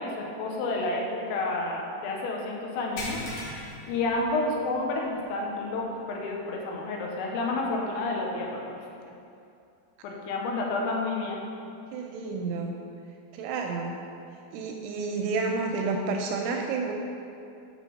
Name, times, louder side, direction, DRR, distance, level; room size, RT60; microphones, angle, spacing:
voice 1, 0.0-3.5 3.9-8.8 10.0-11.4, left 2 dB, 90° left, -1 dB, 3.7 m, -30 dB
sound 1, 3.0-4.8 5.2-5.4 5.9-6.0 7.6-7.7, left 1 dB, 60° left, 2.6 m, -38 dB
voice 2, 11.9-12.8 13.3-14.0 14.5-16.9, right 4 dB, 85° right, 2 dB, 2.8 m, -30 dB
8.2 x 5.0 x 6.4 m, 2.6 s
omnidirectional pair, 5.9 m